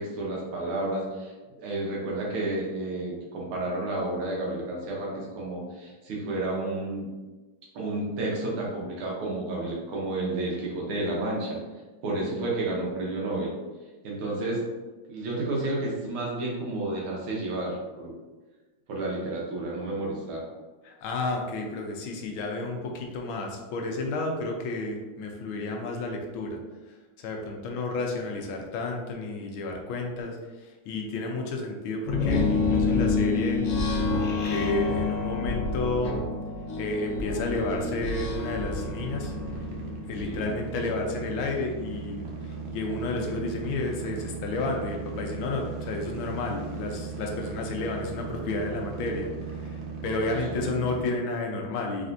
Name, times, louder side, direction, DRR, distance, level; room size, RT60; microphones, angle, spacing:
voice 1, 0.0-1.3 1.6-7.1 7.8-11.6 12.0-13.5 14.0-14.6 15.1-18.1 18.9-20.5 40.2-40.5 50.6-50.7, right 2 dB, 85° right, -3 dB, 1.9 m, -31 dB
voice 2, 20.8-26.6 26.9-33.6 33.9-36.2 36.8-39.3 40.0-42.3 42.7-52.1, left 2 dB, 85° left, 2 dB, 1.5 m, -31 dB
sound 1, 32.1-40.4, left 3 dB, 70° left, 0.7 m, -28 dB
sound 2, 37.5-51.1, right 5 dB, 70° right, 1.1 m, -37 dB
4.1 x 3.4 x 2.6 m, 1.2 s
omnidirectional pair, 2.2 m